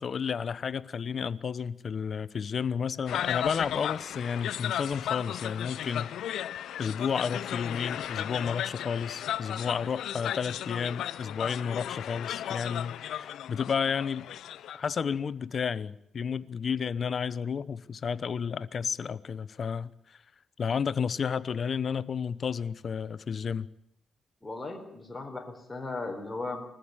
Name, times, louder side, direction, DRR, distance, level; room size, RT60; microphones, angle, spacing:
voice 1, 0.0-6.5 6.8-14.3 14.7-20.2 20.6-23.7, left 6 dB, 55° left, 0.9 m, -32 dB
sound 1, 3.1-14.8, left 11 dB, 80° left, 0.7 m, -35 dB
voice 2, 24.4-26.7, left 3 dB, 15° left, 4.1 m, -37 dB
21.5 x 14.5 x 8.9 m
cardioid pair, 75°, 0 cm